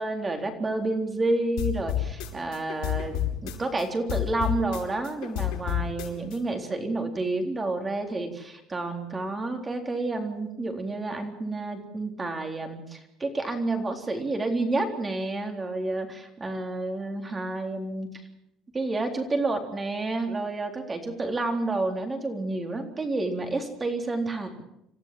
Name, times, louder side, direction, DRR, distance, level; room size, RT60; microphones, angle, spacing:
voice 1, 0.0-3.2 3.4-18.2 18.7-24.6, right 2 dB, 15° right, 4 dB, 3.8 m, -30 dB
sound 1, 1.6-3.8 4.1-6.4, left 12 dB, 80° left, 5.6 m, -30 dB
28.0 x 15.0 x 7.7 m, 0.79 s
cardioid pair, 155°, 0 cm